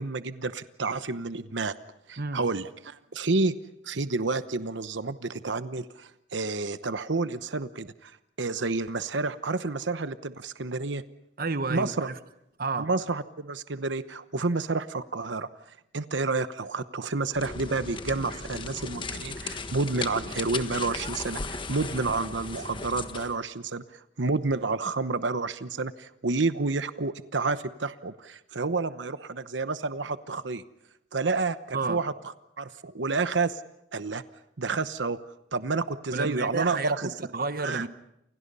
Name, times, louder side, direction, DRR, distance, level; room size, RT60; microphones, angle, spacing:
voice 1, 0.0-1.7 2.1-3.5 3.8-8.1 8.4-11.0 11.7-12.1 12.8-15.5 15.9-30.6 31.1-32.1 32.6-33.6 33.9-34.2 34.6-35.2 35.5-37.1 37.6-37.8, right 3 dB, 85° right, 12 dB, 1.0 m, -29 dB
voice 2, 11.4-12.1 12.6-12.9 31.7-32.0 36.1-37.9, right 3 dB, 55° right, 11 dB, 1.1 m, -31 dB
sound 1, 17.3-23.4, left 3 dB, 25° left, 1.4 m, -36 dB
29.5 x 28.5 x 5.5 m, 0.79 s
head